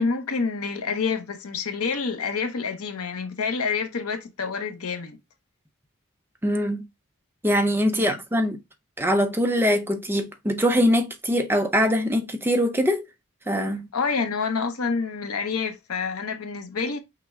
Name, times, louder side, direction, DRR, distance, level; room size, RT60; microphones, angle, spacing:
voice 1, 0.0-5.2 8.0-8.2 13.9-17.0, left 5 dB, 85° left, 0.8 m, -28 dB
voice 2, 6.4-6.8 7.4-8.6 9.0-13.0 13.5-13.9, equal, 10° right, 0.5 m, -22 dB
5.8 x 2.2 x 3.5 m
head